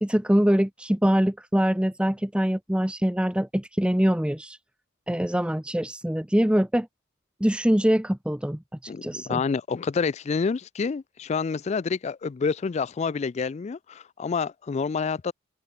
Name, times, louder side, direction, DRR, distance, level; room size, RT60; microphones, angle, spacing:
voice 1, 0.0-4.6 5.1-6.9 7.4-9.4, equal, 5° right, 0.7 m, -24 dB
voice 2, 8.9-15.3, left 5 dB, 35° left, 0.3 m, -28 dB
head